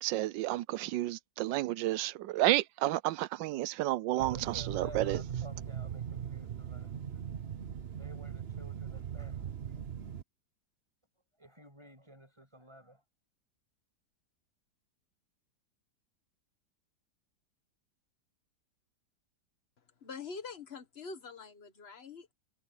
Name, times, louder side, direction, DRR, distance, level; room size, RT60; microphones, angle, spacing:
voice 1, 0.0-5.2, right 16 dB, 85° right, 1.3 m, -31 dB
voice 2, 4.0-7.2 7.9-9.7 11.4-13.0, right 1 dB, 15° right, 7.3 m, -53 dB
sound 1, 4.2-10.2, right 8 dB, 50° right, 0.8 m, -39 dB
voice 3, 20.0-22.3, left 5 dB, 35° left, 1.5 m, -45 dB
omnidirectional pair, 1.9 m